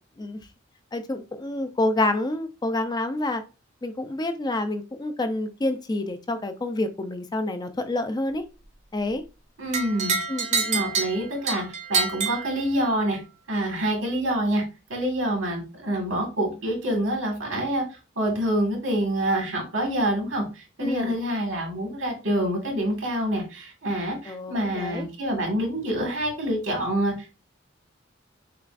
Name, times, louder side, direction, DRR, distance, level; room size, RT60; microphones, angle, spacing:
voice 1, 0.9-3.4 3.8-8.4 8.9-9.2 10.3-10.9 20.8-21.1 24.3-25.1, left 2 dB, 20° left, 8 dB, 0.4 m, -28 dB
voice 2, 9.6-10.2 10.7-13.2 13.5-14.6 14.9-17.8 18.2-27.4, right 1 dB, 85° right, 2 dB, 1.8 m, -26 dB
sound 1, 9.7-13.1, right 5 dB, 40° right, 0.7 m, -27 dB
6.5 x 2.4 x 2.5 m, 0.31 s
head